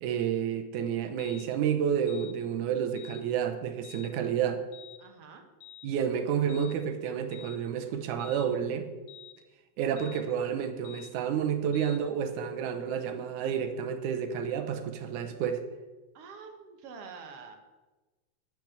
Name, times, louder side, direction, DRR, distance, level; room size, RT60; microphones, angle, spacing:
voice 1, 0.0-4.6 5.8-8.9 9.8-15.6, right 8 dB, 85° right, 6 dB, 2.4 m, -30 dB
sound 1, 1.2-1.5 2.1-2.4 3.0-3.2 3.8-4.1 4.7-5.0 5.6-5.9 6.5-6.8 7.3-7.6 8.2-8.5 9.1-9.4 10.0-10.2 10.8-11.1 11.7-12.0, left 11 dB, 70° left, 2.4 m, -49 dB
voice 2, 5.0-5.4 16.1-17.6, right 5 dB, 60° right, 5 dB, 1.9 m, -46 dB
10.0 x 6.2 x 7.4 m, 1.2 s
omnidirectional pair, 3.5 m